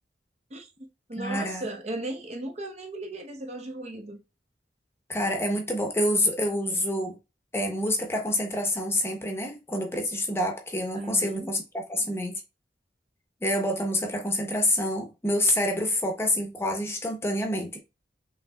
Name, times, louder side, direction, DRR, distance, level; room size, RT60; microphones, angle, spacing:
voice 1, 0.5-4.2 10.9-11.5, right 2 dB, 40° right, 0.7 m, -37 dB
voice 2, 1.2-1.7 5.1-7.2 7.5-12.4 13.4-17.8, left 1 dB, 15° left, 0.8 m, -27 dB
5.5 x 3.1 x 2.3 m
head